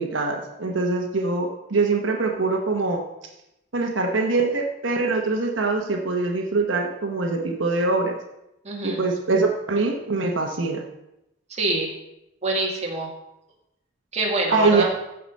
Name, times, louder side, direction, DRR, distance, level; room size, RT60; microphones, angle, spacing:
voice 1, 0.0-3.0 3.7-8.2 8.8-10.8 14.5-14.8, right 3 dB, 85° right, 2 dB, 1.2 m, -23 dB
voice 2, 8.6-9.0 11.5-11.9 12.4-13.1 14.1-14.9, right 2 dB, 35° right, -2 dB, 2.2 m, -25 dB
14.5 x 5.0 x 5.4 m, 0.87 s
head